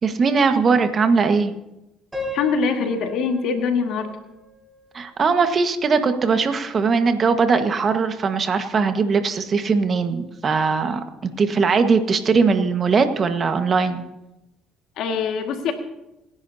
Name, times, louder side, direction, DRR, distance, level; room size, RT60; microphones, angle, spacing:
voice 1, 0.0-1.5 4.9-11.0 11.4-14.0, right 5 dB, 45° right, 8 dB, 1.5 m, -20 dB
Piano, 2.1-5.1, left 2 dB, 15° right, 5.8 m, -36 dB
voice 2, 2.3-4.1 15.0-15.7, left 5 dB, 70° left, 4 dB, 2.0 m, -23 dB
28.0 x 10.5 x 2.8 m, 0.92 s
supercardioid pair, 70°, 0 cm